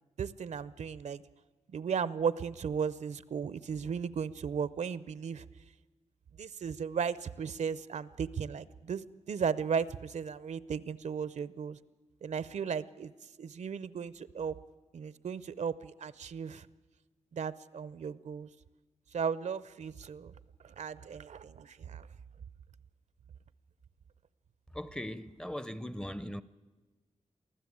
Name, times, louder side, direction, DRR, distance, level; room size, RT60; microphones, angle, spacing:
voice 1, 0.2-1.2 1.7-5.4 6.4-11.8 12.2-13.1 13.4-14.6 14.9-16.7 17.3-18.5 19.1-20.3 20.6-22.1, right 6 dB, 75° right, 0.6 m, -35 dB
voice 2, 24.7-26.4, equal, 5° left, 0.6 m, -39 dB
23.5 x 15.0 x 8.6 m
wide cardioid pair, 145°, 12 cm